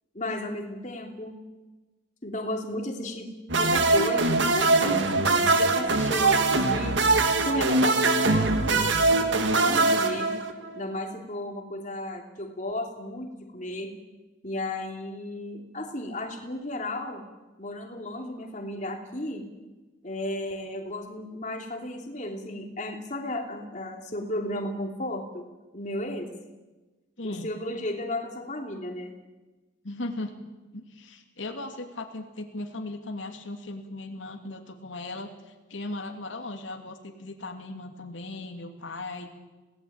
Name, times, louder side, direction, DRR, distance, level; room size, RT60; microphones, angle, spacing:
voice 1, 0.1-1.4 2.2-3.3 3.6-7.0 7.4-10.3 10.7-13.9 14.4-17.2 17.6-19.4 20.0-25.4 25.7-26.3 27.2-29.1, left 1 dB, 40° left, 2 dB, 3.1 m, -34 dB
sound 1, 3.5-10.8, right 3 dB, 70° right, 2.1 m, -22 dB
voice 2, 27.2-27.5 29.8-30.3 30.7-39.3, left 2 dB, 80° left, 3 dB, 2.8 m, -37 dB
26.5 x 18.0 x 8.9 m, 1.2 s
head